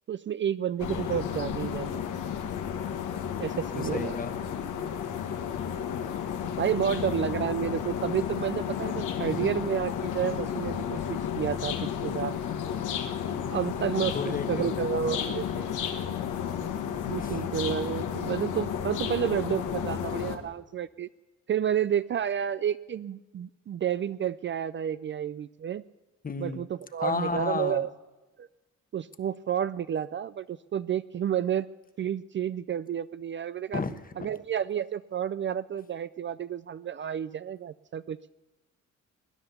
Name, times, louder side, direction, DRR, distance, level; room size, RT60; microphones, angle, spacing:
voice 1, 0.1-2.1 3.4-4.1 6.6-12.4 13.3-14.2 14.5-15.7 17.1-21.1 21.5-25.8 26.4-27.9 28.4-28.5 28.9-31.7 32.0-33.8 34.2-38.2, right 9 dB, 40° right, 15 dB, 0.4 m, -30 dB
sound 1, 0.8-20.4, left 8 dB, 80° left, 1.6 m, -32 dB
voice 2, 3.7-4.3 9.1-9.5 14.0-15.0 17.2-17.4 26.2-26.7 27.0-27.9 33.7-34.1, left 4 dB, 30° left, 10 dB, 1.2 m, -33 dB
19.5 x 10.0 x 7.0 m, 1.2 s
cardioid pair, 90°, 30 cm